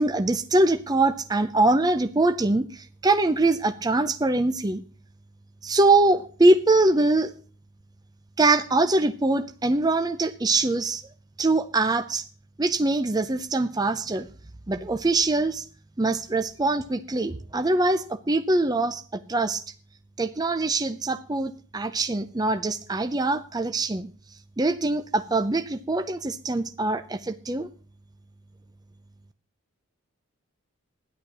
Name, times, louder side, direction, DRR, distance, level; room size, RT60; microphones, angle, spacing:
voice 1, 0.0-4.8 5.6-7.3 8.4-11.0 11.4-12.2 12.6-14.3 14.7-15.7 16.0-19.6 20.2-24.1 24.6-27.7, right 2 dB, 15° right, 9 dB, 0.5 m, -23 dB
13.5 x 10.5 x 6.0 m, 0.42 s
head